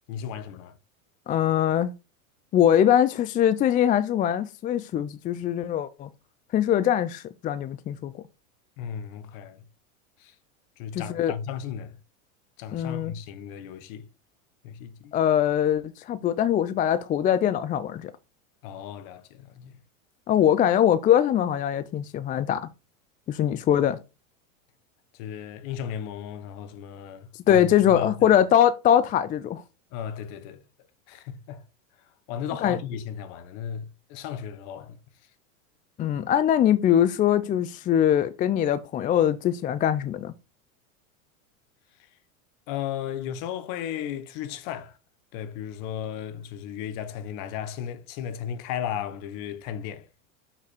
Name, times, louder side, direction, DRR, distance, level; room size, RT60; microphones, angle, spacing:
voice 1, 0.1-0.8 8.8-9.6 10.2-10.3 10.8-12.0 12.6-14.1 14.6-15.1 18.6-19.8 25.1-28.4 29.9-30.6 31.1-31.6 32.3-35.0 42.7-45.0 45.3-50.1, left 9 dB, 50° left, 1.3 m, -35 dB
voice 2, 1.3-1.9 2.5-6.1 6.5-8.1 10.9-11.3 12.7-13.1 15.1-18.1 20.3-22.7 23.3-24.0 27.5-29.6 32.6-32.8 36.0-40.3, left 10 dB, 20° left, 0.4 m, -22 dB
6.6 x 5.9 x 4.4 m
supercardioid pair, 115°, 41 cm